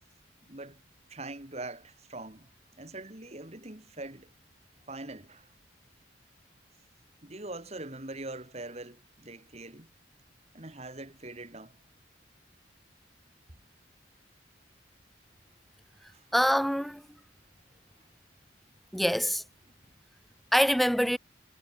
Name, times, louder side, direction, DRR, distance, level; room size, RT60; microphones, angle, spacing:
voice 1, 0.4-0.8 1.1-2.5 2.8-4.3 4.9-5.5 7.2-9.9 10.5-11.8 16.1-16.3, right 2 dB, 35° right, 2.6 m, -42 dB
voice 2, 16.3-17.0 18.9-19.4 20.5-21.2, equal, ahead, 0.5 m, -25 dB
head